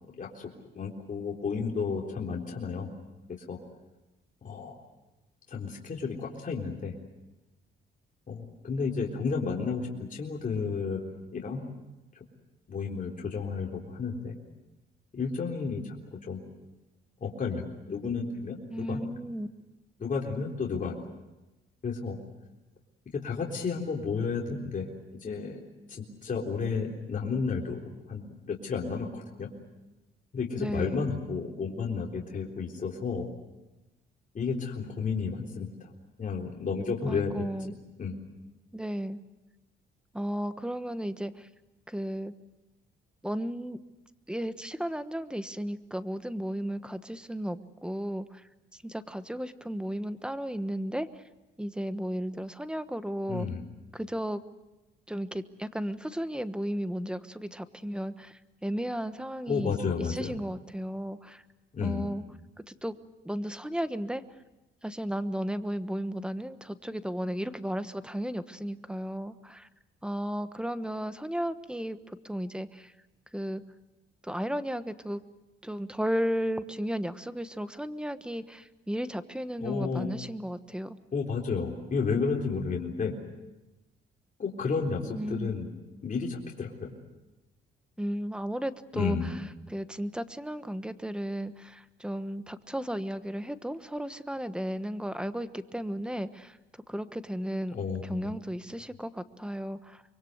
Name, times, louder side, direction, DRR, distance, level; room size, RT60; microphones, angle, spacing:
voice 1, 0.2-2.9 3.3-3.6 4.4-4.7 5.5-6.9 8.3-11.6 12.7-14.3 15.1-16.4 17.2-19.0 20.0-21.0 21.8-22.2 23.1-24.9 25.1-25.6 25.9-27.8 28.1-29.5 30.3-33.3 34.3-35.9 36.2-38.1 53.3-53.6 59.5-60.4 61.7-62.1 79.6-80.1 81.1-83.2 84.4-85.7 86.0-86.9 88.9-89.3 97.7-98.4, left 5 dB, 40° left, -1 dB, 3.8 m, -32 dB
voice 2, 18.7-19.5 30.5-31.1 37.1-37.8 38.7-39.2 40.1-41.5 41.9-42.3 43.2-43.8 44.3-48.4 48.7-51.1 51.6-53.5 53.9-54.4 55.1-59.7 60.1-61.4 61.8-62.2 62.7-62.9 63.2-64.2 64.8-69.7 70.0-72.9 73.3-73.6 74.2-75.2 75.6-81.0 85.1-85.5 88.0-89.3 89.7-96.6 96.9-97.8 98.0-100.0, equal, 5° right, 12 dB, 1.2 m, -34 dB
25.0 x 23.5 x 8.0 m, 1.0 s
cardioid pair, 90°, 20 cm